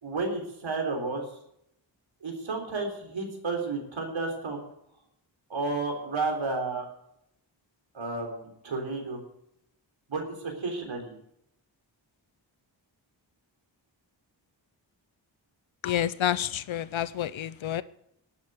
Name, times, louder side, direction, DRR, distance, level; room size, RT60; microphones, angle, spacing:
voice 1, 0.0-1.2 2.2-4.6 5.5-6.8 7.9-9.2 10.1-11.1, right 3 dB, 80° right, 3.7 m, -32 dB
voice 2, 15.8-17.8, left 11 dB, 85° left, 0.7 m, -29 dB
12.5 x 9.0 x 8.0 m
wide cardioid pair, 110°, 46 cm